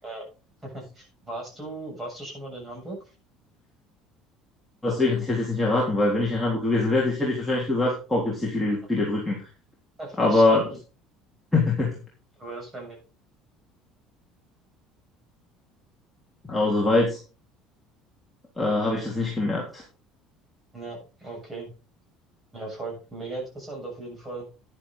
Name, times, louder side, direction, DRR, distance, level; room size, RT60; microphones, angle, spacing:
voice 1, 0.6-3.0 10.0-10.6 12.4-13.0 20.7-21.7 22.5-24.5, right 2 dB, 15° right, 0 dB, 7.2 m, -37 dB
voice 2, 4.8-9.4 10.2-10.7 11.5-11.9 16.5-17.2 18.6-19.8, left 2 dB, 5° left, -5 dB, 3.5 m, -23 dB
11.0 x 10.5 x 3.9 m, 0.33 s
cardioid pair, 150°, 0 cm